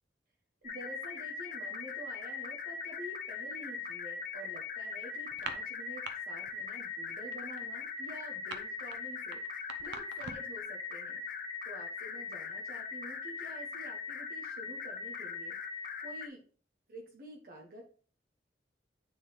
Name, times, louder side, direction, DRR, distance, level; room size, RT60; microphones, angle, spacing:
sound 1, 0.6-16.3, left 5 dB, 50° left, 0.7 m, -40 dB
voice 1, 0.6-11.2 11.6-16.4 16.9-17.8, right 1 dB, 55° right, 0 dB, 1.1 m, -49 dB
sound 2, 5.3-6.1 6.4-6.8 7.0-10.6, right 5 dB, 85° right, 0.8 m, -44 dB
9.3 x 3.9 x 3.4 m, 0.41 s
head